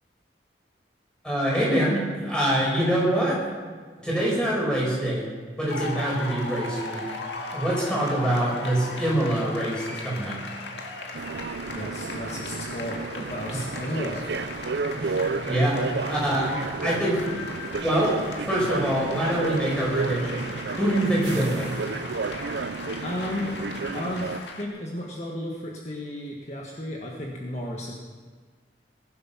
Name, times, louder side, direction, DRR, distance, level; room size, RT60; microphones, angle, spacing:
voice 1, 1.2-3.4 4.0-5.3 5.6-7.1 7.5-10.4 13.5-13.6 14.9-16.5 16.8-17.3 17.8-18.2 18.5-20.4 20.7-21.7, right 1 dB, 5° left, -6 dB, 6.1 m, -25 dB
sound 1, 5.7-24.6, left 3 dB, 85° left, 2.0 m, -38 dB
sound 2, 11.1-24.4, right 4 dB, 75° right, 0.6 m, -32 dB
voice 2, 11.7-14.2 23.0-23.7 23.9-27.9, left 1 dB, 40° left, -2 dB, 1.6 m, -33 dB
20.0 x 11.0 x 5.8 m, 1.5 s
head